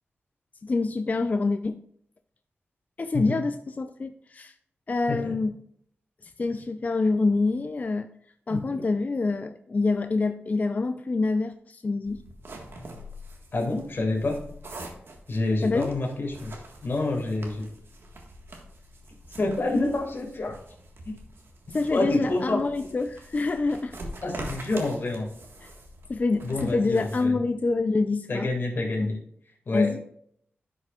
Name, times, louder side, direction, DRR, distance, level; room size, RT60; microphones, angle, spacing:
voice 1, 0.6-1.8 3.0-4.5 4.9-5.5 6.2-8.1 8.5-12.2 15.6-15.9 21.7-24.0 26.1-28.5 29.0-29.1 29.7-30.0, left 3 dB, 40° left, 8 dB, 0.4 m, -26 dB
voice 2, 8.5-8.9 13.5-14.4 15.3-16.6 16.8-17.7 19.4-20.6 21.1-21.2 21.7-22.6 24.2-25.3 26.4-27.4 28.3-29.2 29.7-30.0, left 2 dB, 55° left, 1 dB, 2.1 m, -28 dB
sound 1, 12.0-27.2, right 1 dB, 65° right, 1.6 m, -44 dB
11.0 x 6.0 x 2.4 m, 0.67 s
wide cardioid pair, 75°, 4 cm